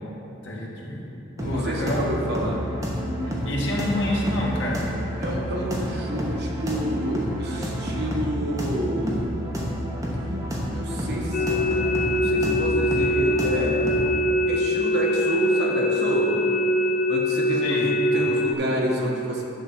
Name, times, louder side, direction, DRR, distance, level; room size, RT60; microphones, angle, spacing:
voice 1, 0.4-2.1 3.2-4.9 17.6-18.3, left 1 dB, 60° left, -4 dB, 1.6 m, -28 dB
sound 1, 1.4-14.2, equal, 15° right, 1.0 m, -29 dB
voice 2, 1.4-2.6 5.2-9.3 10.7-14.0 14.4-16.3 17.1-17.8 18.1-19.4, equal, 55° right, -2 dB, 1.1 m, -29 dB
sound 2, 11.3-18.5, left 1 dB, 45° left, 0.4 m, -23 dB
10.5 x 3.5 x 6.3 m, 2.9 s
head